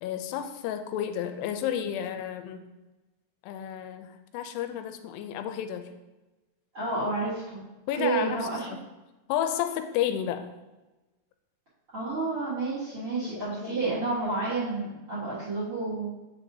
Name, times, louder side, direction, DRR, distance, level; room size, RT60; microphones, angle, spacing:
voice 1, 0.0-2.7 3.4-5.9 7.9-8.8 9.3-10.5 13.2-13.3 13.6-13.9, left 10 dB, 85° left, 8 dB, 2.6 m, -31 dB
voice 2, 6.7-7.6 8.0-8.7 11.9-16.1, right 3 dB, 55° right, -8 dB, 1.5 m, -30 dB
7.5 x 5.9 x 2.7 m, 1.1 s
omnidirectional pair, 4.7 m